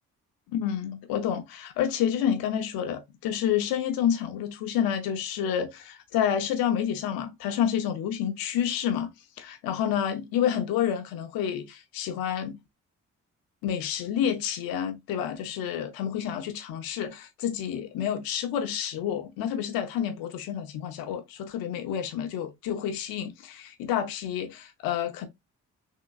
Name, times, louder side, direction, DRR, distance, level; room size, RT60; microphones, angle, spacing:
voice 1, 0.5-9.1 9.4-12.6 13.6-25.3, left 9 dB, 85° left, 0.7 m, -29 dB
3.6 x 2.8 x 2.3 m
supercardioid pair, 50°, 34 cm